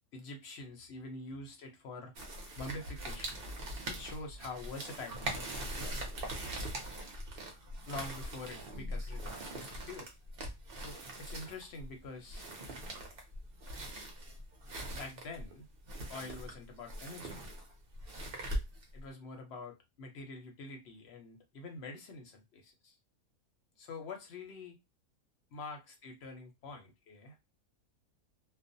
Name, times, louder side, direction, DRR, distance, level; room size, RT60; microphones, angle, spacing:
voice 1, 0.1-2.1 2.6-3.4 3.9-6.1 7.9-10.1 10.8-12.5 14.9-15.7 16.1-17.5 18.9-23.0 23.8-24.8 25.5-27.4, left 3 dB, 60° left, 0.8 m, -46 dB
sound 1, 2.2-19.0, right 1 dB, 55° right, 0.7 m, -42 dB
2.4 x 2.1 x 2.6 m
omnidirectional pair, 1.5 m